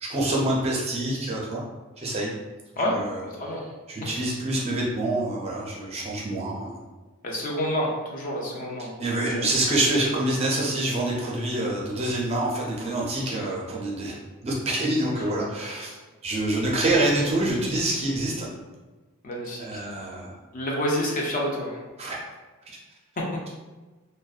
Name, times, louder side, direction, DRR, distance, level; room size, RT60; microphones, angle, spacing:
voice 1, 0.0-1.6 2.0-2.3 2.8-3.6 3.9-6.8 8.8-16.0 16.2-18.5 19.6-20.3 22.0-22.2, right 1 dB, 30° right, -3 dB, 0.4 m, -26 dB
voice 2, 3.2-3.6 4.0-4.2 7.2-8.9 9.2-9.4 19.2-19.8 20.5-21.8, equal, 40° left, -2 dB, 0.4 m, -28 dB
2.5 x 2.1 x 2.3 m, 1.2 s
head